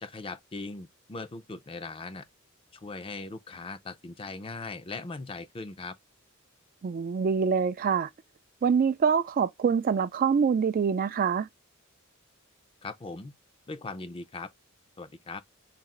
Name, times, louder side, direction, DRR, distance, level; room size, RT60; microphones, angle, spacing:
voice 1, 0.0-2.2 2.7-5.9 12.8-13.3 13.7-14.5 15.0-15.4, left 3 dB, 25° left, 0.5 m, -39 dB
voice 2, 6.8-8.1 8.6-11.5, right 6 dB, 40° right, 0.3 m, -25 dB
4.1 x 2.4 x 3.6 m
head